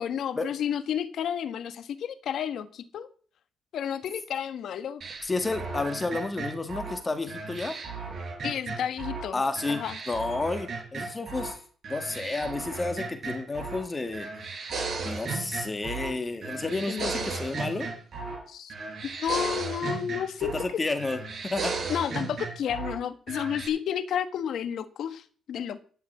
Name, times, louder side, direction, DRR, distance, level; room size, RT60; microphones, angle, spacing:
voice 1, 0.0-3.1 3.7-5.0 8.4-9.4 9.7-10.0 16.9-17.1 18.5-18.7 19.2-20.5 21.9-25.8, left 9 dB, 70° left, 1.3 m, -31 dB
sound 1, 5.0-9.3 9.6-11.5 11.8-13.9 14.1-16.2 16.4-18.4 18.7-20.7 21.0-23.0 23.3-23.7, right 4 dB, 50° right, 4.7 m, -35 dB
voice 2, 5.2-7.8 9.3-9.8 10.1-11.6 11.9-14.5 15.0-17.9 20.6-21.8, left 3 dB, 25° left, 1.8 m, -31 dB
12.5 x 5.9 x 8.7 m
cardioid pair, 90°, 0 cm